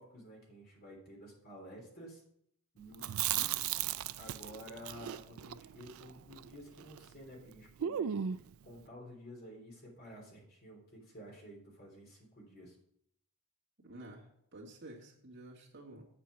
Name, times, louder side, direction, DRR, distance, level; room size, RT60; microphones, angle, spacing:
voice 1, 0.0-2.2 2.7-3.8 4.2-12.8, equal, 40° left, -1 dB, 3.2 m, -52 dB
Chewing mastication, 2.9-7.1 7.4-7.5 7.8-8.5, right 10 dB, 70° right, 0.3 m, -36 dB
voice 2, 13.8-16.1, right 1 dB, 50° right, -2 dB, 2.2 m, -51 dB
8.3 x 7.4 x 4.8 m, 0.68 s
head